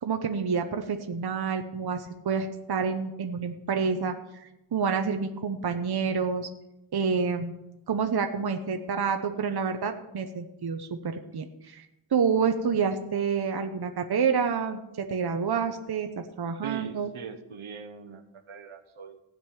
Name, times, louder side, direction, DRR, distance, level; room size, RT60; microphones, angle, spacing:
voice 1, 0.0-4.1 4.4-6.5 6.9-7.5 7.9-11.9 12.1-17.1, right 6 dB, 50° right, 5 dB, 0.9 m, -28 dB
voice 2, 16.6-19.2, right 6 dB, 75° right, 6 dB, 1.3 m, -41 dB
16.0 x 5.3 x 9.1 m, 0.93 s
wide cardioid pair, 125°, 50 cm